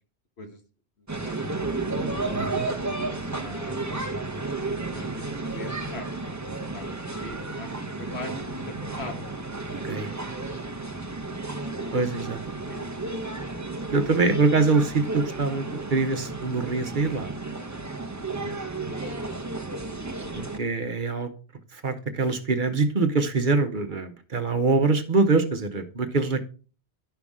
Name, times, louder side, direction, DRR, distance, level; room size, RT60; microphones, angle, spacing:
sound 1, 1.1-20.6, right 3 dB, 15° right, 1.1 m, -32 dB
voice 1, 2.3-2.7 9.9-10.1 11.9-12.4 13.9-17.3 20.3-21.3 21.7-26.4, right 3 dB, 50° right, 8 dB, 1.1 m, -24 dB
voice 2, 3.2-3.8 4.9-6.1 6.7-7.0 7.2-7.7 8.0-9.3 11.4-12.0 12.7-13.3 18.4-18.6 23.7-23.8, left 2 dB, 75° left, 4 dB, 1.9 m, -41 dB
11.5 x 5.9 x 3.6 m, 0.35 s
omnidirectional pair, 1.1 m